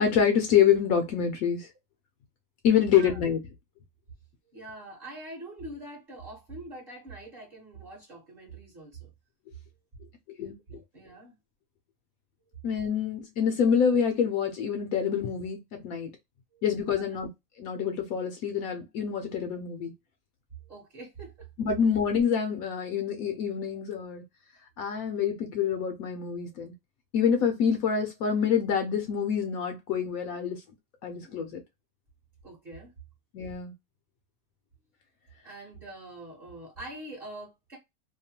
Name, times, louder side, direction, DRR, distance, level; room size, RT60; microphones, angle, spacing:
voice 1, 0.0-1.7 2.6-3.4 10.4-10.6 12.6-16.1 16.6-17.3 17.6-19.9 21.6-24.2 24.8-26.7 27.1-30.6 31.0-31.6 33.3-33.7, left 7 dB, 70° left, 1.0 m, -26 dB
voice 2, 4.5-9.1 10.7-11.4 16.5-16.6 16.9-17.0 20.6-21.5 32.4-32.9 35.4-37.8, right 2 dB, 40° right, 1.1 m, -44 dB
2.8 x 2.1 x 2.7 m
omnidirectional pair, 1.6 m